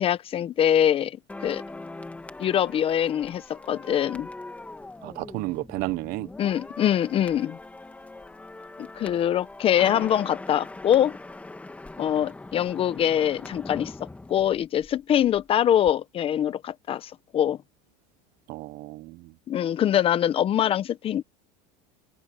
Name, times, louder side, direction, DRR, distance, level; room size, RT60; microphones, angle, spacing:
voice 1, 0.0-1.6 2.4-4.3 6.4-7.6 8.8-11.2 12.0-13.9 14.3-17.6 19.5-21.2, left 10 dB, 30° left, 0.9 m, -24 dB
sound 1, 1.3-15.4 15.7-15.9, left 2 dB, 5° left, 1.9 m, -42 dB
voice 2, 5.0-6.3 18.5-19.3, right 20 dB, 50° right, 0.8 m, -32 dB
supercardioid pair, 140°, 19 cm